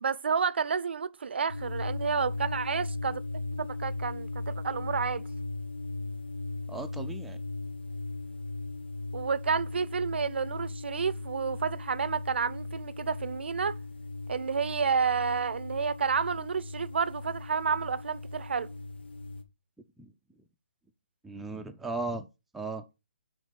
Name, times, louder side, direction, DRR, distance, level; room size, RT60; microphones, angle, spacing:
voice 1, 0.0-5.2 9.1-13.8 14.3-18.7, right 6 dB, 70° right, 0.5 m, -30 dB
sound 1, 1.5-19.4, left 3 dB, 75° left, 1.5 m, -38 dB
voice 2, 6.7-7.4 20.0-20.1 21.2-22.3 22.5-22.8, right 3 dB, ahead, 0.4 m, -36 dB
7.2 x 3.2 x 5.1 m
hypercardioid pair, 155°, 6 cm